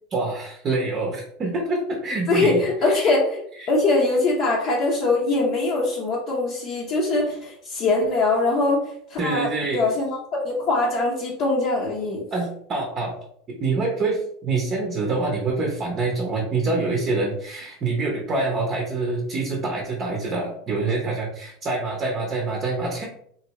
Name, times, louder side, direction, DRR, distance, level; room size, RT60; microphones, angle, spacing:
voice 1, 0.1-3.1 3.6-3.7 9.2-9.8 12.3-13.1 13.5-23.0, right 3 dB, 35° right, 0 dB, 0.7 m, -26 dB
voice 2, 2.3-3.4 3.7-10.2 10.4-12.2, left 2 dB, 45° left, -4 dB, 0.7 m, -22 dB
3.0 x 2.6 x 2.9 m, 0.67 s
supercardioid pair, 115°, 0 cm